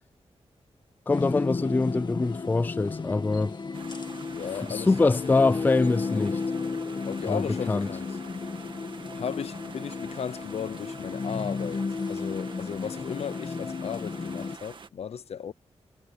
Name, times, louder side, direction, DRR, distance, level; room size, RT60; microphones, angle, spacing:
sound 1, 1.1-14.6, left 4 dB, 40° left, 2.0 m, -33 dB
voice 1, 1.1-3.5 4.6-6.4 7.2-7.4 7.7-7.9, left 3 dB, 15° left, 0.4 m, -24 dB
sound 2, 3.7-14.9, right 5 dB, 45° right, 1.9 m, -46 dB
voice 2, 4.3-4.9 7.0-8.2 9.1-15.5, left 7 dB, 65° left, 0.6 m, -35 dB
wide cardioid pair, 160°, 11 cm